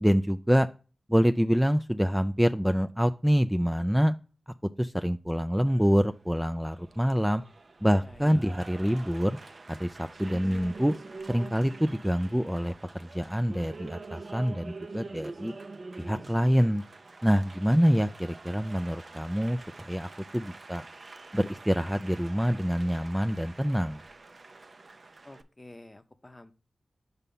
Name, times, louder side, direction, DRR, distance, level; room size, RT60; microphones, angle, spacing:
voice 1, 0.0-0.7 1.1-4.1 4.8-7.4 7.8-9.4 9.7-10.9 11.3-15.5 16.0-16.8 17.2-20.8 21.3-24.0, equal, 5° right, 8 dB, 0.3 m, -26 dB
Applause, 5.7-25.4, right 3 dB, 60° right, 0.5 m, -46 dB
voice 2, 8.0-8.4 25.2-26.5, left 2 dB, 25° left, 9 dB, 0.7 m, -49 dB
5.5 x 4.1 x 5.4 m, 0.36 s
cardioid pair, 50°, 0 cm